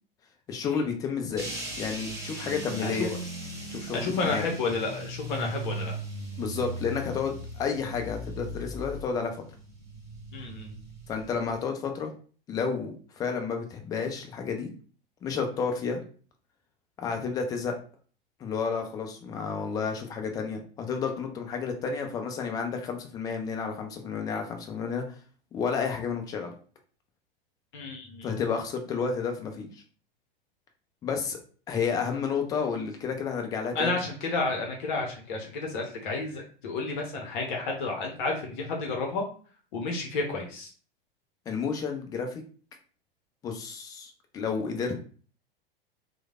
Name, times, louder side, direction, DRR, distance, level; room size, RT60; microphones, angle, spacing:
voice 1, 0.5-1.5 1.8-3.1 3.7-4.5 6.4-9.3 11.1-12.1 12.5-14.7 15.2-16.0 17.0-17.7 18.4-25.0 25.5-26.5 28.2-29.7 31.0-31.4 31.7-34.0 41.5-42.4 43.4-45.0, left 5 dB, 15° left, 4 dB, 0.3 m, -31 dB
sound 1, 1.4-11.6, right 1 dB, 10° right, 1.1 m, -38 dB
voice 2, 3.9-5.9 10.3-10.7 27.7-28.3 33.7-39.2 39.7-40.7, left 3 dB, 55° left, 1 dB, 0.7 m, -31 dB
3.0 x 2.1 x 2.3 m, 0.41 s
figure-of-eight pair, 90°, 29 cm